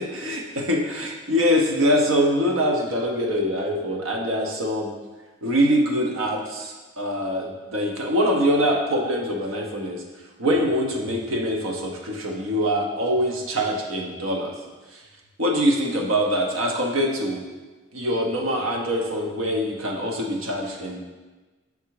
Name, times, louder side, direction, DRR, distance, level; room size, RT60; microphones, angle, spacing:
voice 1, 0.0-4.9 5.4-10.0 10.4-14.5 15.4-17.4 17.9-21.0, equal, 90° right, 0 dB, 0.8 m, -24 dB
7.2 x 3.5 x 4.7 m, 1.2 s
head